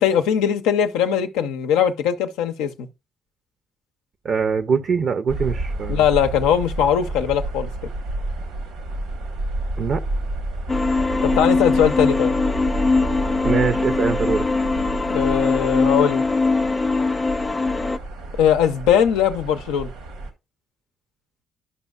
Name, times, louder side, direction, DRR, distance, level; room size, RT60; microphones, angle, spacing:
voice 1, 0.0-2.7 5.9-7.7 11.2-12.3 15.1-16.2 18.4-19.9, left 9 dB, 80° left, 0.5 m, -20 dB
voice 2, 4.2-6.0 9.8-10.0 13.4-14.5, right 6 dB, 60° right, 0.5 m, -22 dB
sound 1, 5.3-20.3, right 2 dB, 85° right, 1.2 m, -30 dB
sound 2, 10.7-18.0, left 3 dB, 30° left, 0.5 m, -21 dB
11.0 x 5.3 x 2.3 m
hypercardioid pair, 50°, 0 cm